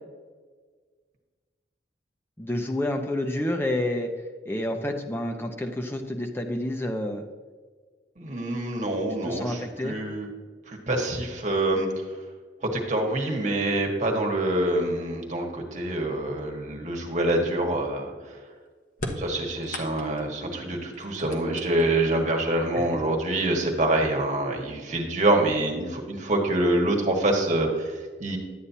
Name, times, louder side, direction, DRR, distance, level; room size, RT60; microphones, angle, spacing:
voice 1, 2.4-4.1 4.5-7.3 9.2-10.0, left 1 dB, 15° left, 3 dB, 0.8 m, -29 dB
voice 2, 8.2-10.3 10.7-12.0 12.6-18.4 19.2-28.4, right 1 dB, 45° right, 1 dB, 1.5 m, -26 dB
sound 1, 18.9-20.4 20.9-22.1 23.1-23.2 24.2-24.3 24.8-25.3, left 1 dB, 50° left, 1.1 m, -37 dB
11.0 x 8.7 x 2.8 m, 1.5 s
head